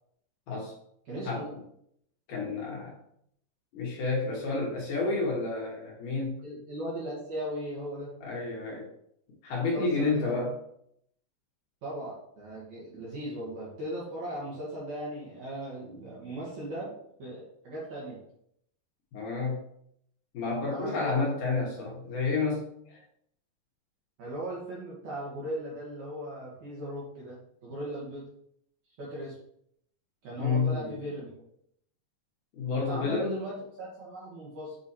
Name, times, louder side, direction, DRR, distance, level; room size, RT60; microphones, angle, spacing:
voice 1, 1.1-1.5 6.4-8.1 9.7-10.4 11.8-16.9 17.2-18.2 20.7-21.3 24.2-28.3 29.0-29.4 30.2-31.3 32.7-34.8, right 1 dB, 65° right, -6 dB, 1.9 m, -38 dB
voice 2, 2.3-3.0 3.7-6.4 8.2-8.9 9.4-10.6 19.1-19.6 20.3-23.0 30.4-31.0 32.6-33.4, left 3 dB, 70° left, -3 dB, 2.0 m, -30 dB
8.0 x 3.0 x 4.1 m, 0.72 s
omnidirectional pair, 5.2 m